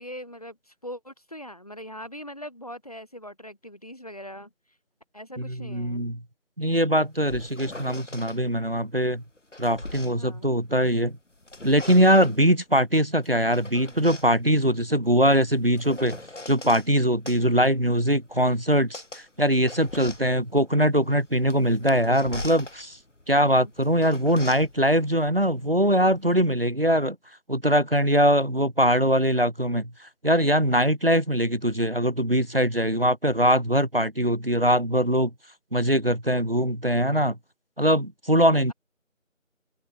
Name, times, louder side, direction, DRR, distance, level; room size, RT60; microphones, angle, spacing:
voice 1, 0.0-4.5 5.1-6.1 10.2-10.6 17.4-17.6 23.3-23.7, equal, 30° left, 5.4 m, -41 dB
voice 2, 5.4-6.2 6.6-9.2 9.6-11.1 11.6-16.2 16.5-23.0 23.3-27.2 27.5-35.3 35.7-37.4 37.8-38.7, equal, 45° right, 1.2 m, -22 dB
sound 1, 7.0-8.4 9.2-11.0 11.3-12.5 13.2-16.9 17.3-26.3, left 2 dB, 65° left, 1.9 m, -42 dB
open air
figure-of-eight pair, 180°, 39 cm